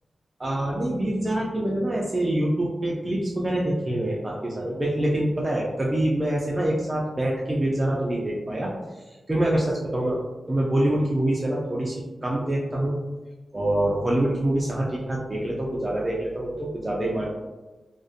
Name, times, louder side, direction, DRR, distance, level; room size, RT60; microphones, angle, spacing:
voice 1, 0.4-10.2 10.5-13.0 13.5-17.3, right 1 dB, 25° right, -4 dB, 0.3 m, -25 dB
2.4 x 2.0 x 2.5 m, 1.2 s
wide cardioid pair, 100°, 0 cm